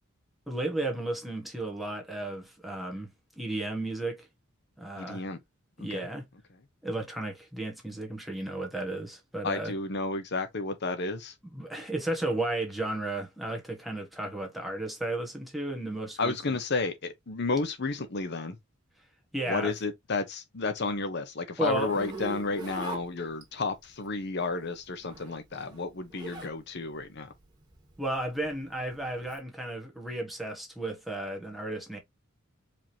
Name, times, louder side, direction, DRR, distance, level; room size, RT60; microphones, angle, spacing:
voice 1, 0.5-3.1 3.4-4.3 4.8-5.2 5.8-6.3 6.8-9.7 11.5-16.6 19.3-19.7 21.6-21.9 28.0-32.0, right 2 dB, ahead, 1.5 m, -34 dB
voice 2, 5.0-5.4 5.8-6.1 9.4-11.3 16.2-18.6 19.5-27.3, left 3 dB, 55° left, 0.8 m, -32 dB
Zipper (clothing), 21.7-23.7 24.9-26.6 26.9-29.4, right 2 dB, 20° right, 2.2 m, -41 dB
5.0 x 3.6 x 2.8 m
head